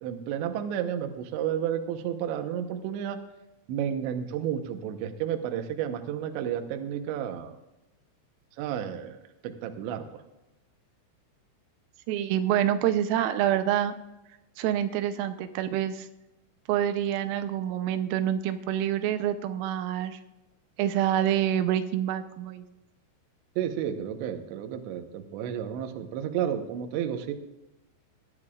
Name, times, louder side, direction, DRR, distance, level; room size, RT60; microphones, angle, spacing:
voice 1, 0.0-3.2 3.7-7.6 8.6-9.2 9.4-10.1 23.6-27.3, right 9 dB, 75° right, 6 dB, 3.0 m, -31 dB
voice 2, 12.1-13.9 14.6-16.1 16.7-20.2 20.8-22.6, right 11 dB, 90° right, 9 dB, 3.5 m, -27 dB
19.5 x 12.5 x 2.5 m, 0.97 s
omnidirectional pair, 5.9 m